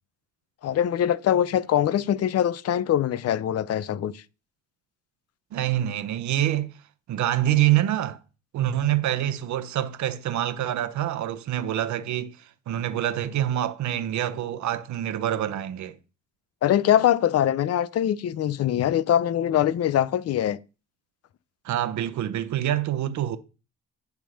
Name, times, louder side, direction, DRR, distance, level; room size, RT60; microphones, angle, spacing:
voice 1, 0.6-4.1 16.6-20.6, left 11 dB, 55° left, 0.6 m, -23 dB
voice 2, 5.5-6.7 7.1-8.2 8.5-16.0 21.6-23.4, right 12 dB, 70° right, 0.9 m, -26 dB
9.8 x 3.6 x 6.3 m
cardioid pair, 90°, 30 cm